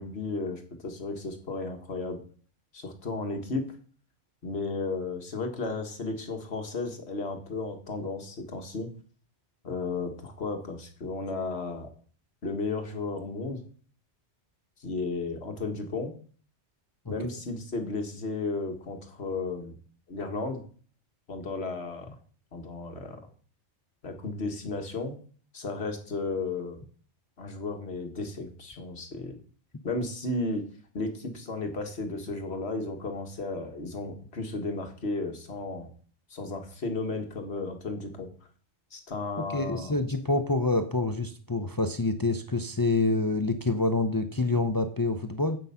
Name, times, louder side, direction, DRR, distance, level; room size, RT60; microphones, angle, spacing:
voice 1, 0.0-2.2 2.7-3.7 4.4-8.9 9.6-11.9 12.4-13.6 14.8-16.1 17.1-19.7 20.1-20.6 21.3-22.1 22.5-23.2 24.0-25.2 25.5-26.8 27.4-29.4 29.8-30.6 30.9-35.9 36.3-38.3 38.9-40.0, left 3 dB, 65° left, 4 dB, 1.9 m, -34 dB
voice 2, 39.4-45.6, left 2 dB, 20° left, 8 dB, 0.6 m, -27 dB
8.3 x 8.0 x 5.7 m, 0.43 s
omnidirectional pair, 1.2 m